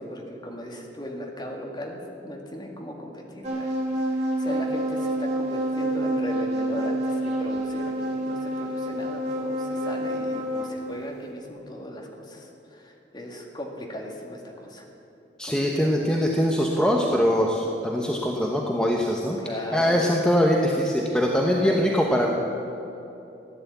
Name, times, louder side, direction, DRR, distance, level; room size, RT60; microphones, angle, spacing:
voice 1, 0.0-3.7 4.1-14.9 15.4-16.2 19.4-20.1 21.6-22.0, left 1 dB, 25° left, 0 dB, 2.0 m, -37 dB
sound 1, 3.4-10.9, right 1 dB, 40° right, 3.7 m, -28 dB
voice 2, 15.4-19.4 19.7-22.3, equal, 5° left, -1 dB, 1.0 m, -22 dB
15.5 x 10.5 x 8.2 m, 2.9 s
head